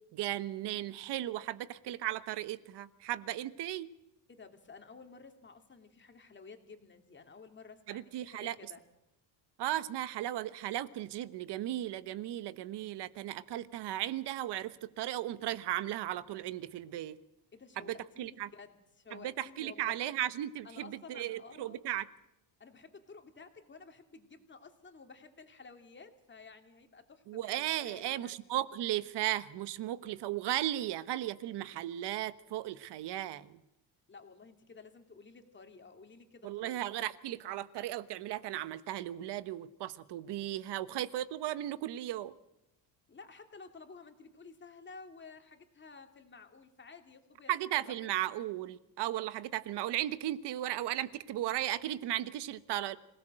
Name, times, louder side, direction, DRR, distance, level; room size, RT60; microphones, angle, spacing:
voice 1, 0.1-3.9 7.9-8.6 9.6-17.2 17.8-18.5 19.1-22.1 27.3-33.6 36.4-42.3 47.5-53.0, right 13 dB, 65° right, 1.3 m, -36 dB
voice 2, 4.3-8.8 17.5-20.0 20.6-21.8 22.6-28.4 34.1-36.8 43.1-48.0, left 4 dB, 25° left, 2.8 m, -53 dB
25.5 x 17.5 x 7.8 m
cardioid pair, 120°, 44 cm